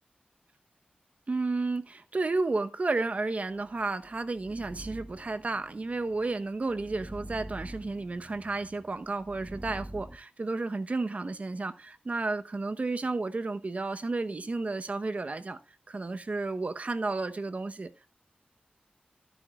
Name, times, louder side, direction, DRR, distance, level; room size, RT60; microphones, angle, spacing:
voice 1, 1.3-15.6 15.9-18.1, right 3 dB, 45° right, 0.9 m, -32 dB
sound 1, 3.7-10.2, right 1 dB, 20° right, 0.9 m, -46 dB
13.0 x 11.0 x 2.4 m
wide cardioid pair, 65°, 3 cm